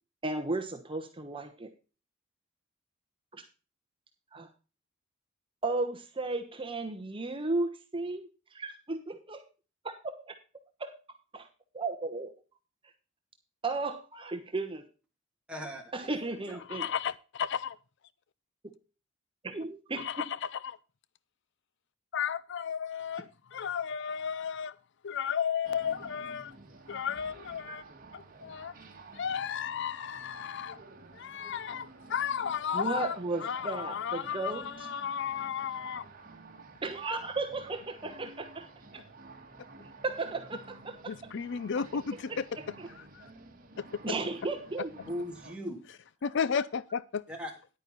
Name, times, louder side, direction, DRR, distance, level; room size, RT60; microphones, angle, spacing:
voice 1, 0.2-1.7 3.3-3.4 4.3-4.5 5.6-9.4 10.0-10.2 10.8-10.9 11.3-11.5 11.7-12.3 13.6-14.8 15.9-16.9 19.4-20.2 27.7-27.8 32.7-34.6 36.8-38.7 40.0-41.1 42.3-42.4 42.8-42.9 44.0-44.9, right 3 dB, 25° right, 1.1 m, -34 dB
voice 2, 15.5-16.6 45.1-45.8 47.3-47.5, equal, 5° right, 2.8 m, -39 dB
voice 3, 16.7-17.8 20.0-20.8 22.1-24.7 25.0-26.5 26.9-27.8 28.1-28.7 29.1-30.8 31.1-36.1 41.1-42.5 43.0-43.2 43.8-43.9 46.2-47.2, left 7 dB, 65° left, 0.5 m, -34 dB
sound 1, 25.6-45.5, right 3 dB, 45° right, 1.8 m, -51 dB
10.5 x 9.1 x 4.0 m
head